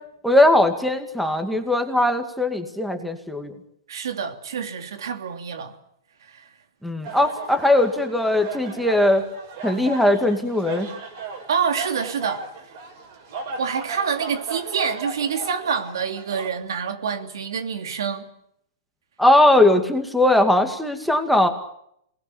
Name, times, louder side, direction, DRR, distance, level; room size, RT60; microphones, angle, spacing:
voice 1, 0.2-3.5 6.8-9.2 9.6-10.9 19.2-21.5, left 1 dB, ahead, 2.3 m, -19 dB
voice 2, 3.9-5.8 6.3-6.5 11.5-12.5 13.6-18.3, right 6 dB, 85° right, 3.0 m, -27 dB
sound 1, 7.0-16.5, right 4 dB, 50° right, 6.7 m, -36 dB
27.0 x 19.5 x 8.7 m
hypercardioid pair, 160°, 2 cm